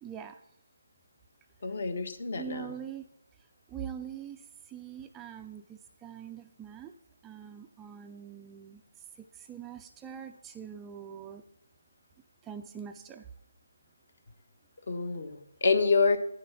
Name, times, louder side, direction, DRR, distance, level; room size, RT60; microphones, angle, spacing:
voice 1, 0.0-0.4 2.3-3.0 3.7-4.4 4.7-6.9 7.2-8.8 9.3-11.4 12.5-13.2, right 8 dB, 10° right, 6 dB, 0.4 m, -43 dB
voice 2, 1.6-2.7 14.9-16.2, left 4 dB, 50° left, 9 dB, 1.4 m, -27 dB
10.0 x 7.4 x 5.8 m, 0.79 s
figure-of-eight pair, 160°, 0 cm